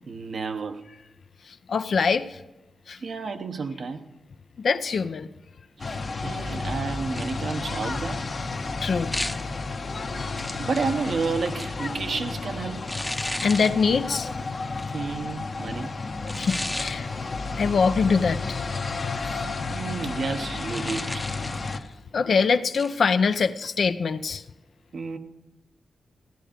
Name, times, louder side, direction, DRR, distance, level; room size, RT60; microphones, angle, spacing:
voice 1, 0.1-0.8 3.0-4.1 5.8-8.2 10.6-12.8 14.9-15.9 19.2-21.3 24.9-25.2, right 4 dB, 70° right, 0.9 m, -31 dB
voice 2, 1.7-2.3 2.9-3.0 4.6-5.3 8.8-9.1 13.4-14.3 16.3-17.1 17.6-18.6 22.1-24.4, left 5 dB, 70° left, 0.5 m, -23 dB
sound 1, 5.8-21.8, left 3 dB, 50° left, 0.9 m, -32 dB
sound 2, 7.2-7.6 9.1-9.5 10.4-11.9 12.9-13.8 14.8-15.0 16.3-17.0 20.6-21.9 22.7-23.0, left 1 dB, 10° left, 0.7 m, -34 dB
15.0 x 10.0 x 5.2 m
cardioid pair, 70°, 0 cm